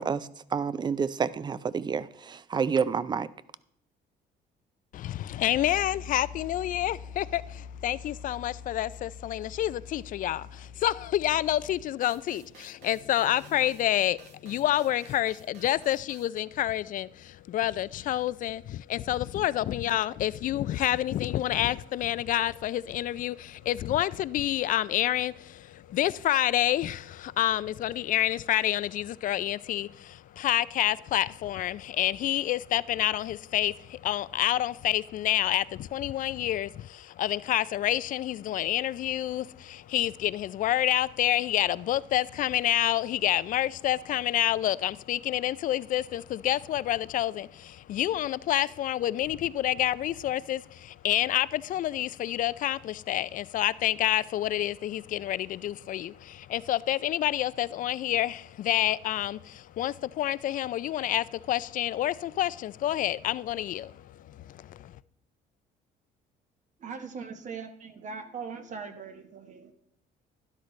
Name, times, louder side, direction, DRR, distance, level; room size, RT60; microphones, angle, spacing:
voice 1, 0.0-3.3, right 6 dB, 25° right, 0.4 m, -29 dB
voice 2, 4.9-65.0, left 13 dB, 50° left, 0.4 m, -28 dB
Piano, 5.6-11.9, left 6 dB, 25° left, 1.0 m, -44 dB
sound 1, 12.0-16.4, right 6 dB, 85° right, 1.4 m, -54 dB
voice 3, 66.8-69.7, right 5 dB, 45° right, 1.1 m, -40 dB
12.0 x 11.5 x 3.2 m
cardioid pair, 110°, 17 cm